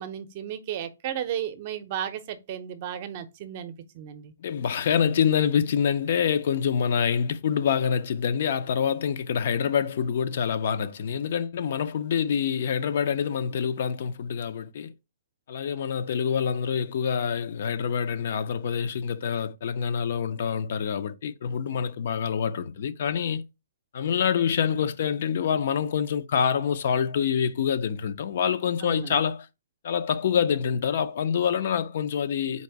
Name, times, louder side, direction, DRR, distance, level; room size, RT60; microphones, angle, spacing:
voice 1, 0.0-4.3 28.8-29.2, right 10 dB, 40° right, 0.6 m, -34 dB
voice 2, 4.4-14.9 15.5-23.5 23.9-29.5 29.8-32.6, left 7 dB, 55° left, 0.5 m, -26 dB
4.1 x 2.6 x 4.6 m
hypercardioid pair, 155°, 0 cm